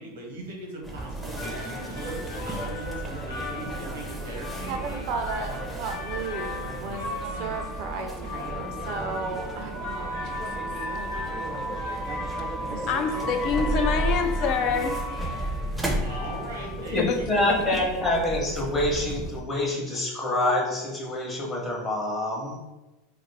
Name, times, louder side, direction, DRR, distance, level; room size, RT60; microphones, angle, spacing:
voice 1, 0.0-5.1 16.0-18.0, right 2 dB, 90° right, 0 dB, 0.9 m, -40 dB
sound 1, 0.8-19.4, right 1 dB, 5° right, 0.5 m, -33 dB
sound 2, 1.1-17.0, left 4 dB, 75° left, 0.7 m, -38 dB
voice 2, 4.7-7.0 7.3-10.3 12.7-13.3, right 4 dB, 60° right, 5 dB, 0.4 m, -35 dB
voice 3, 12.9-15.0 17.0-17.8, left 5 dB, 50° left, 6 dB, 0.3 m, -27 dB
voice 4, 16.9-22.6, left 1 dB, 25° left, -2 dB, 0.8 m, -26 dB
2.4 x 2.4 x 3.2 m, 1.1 s
supercardioid pair, 115°, 0 cm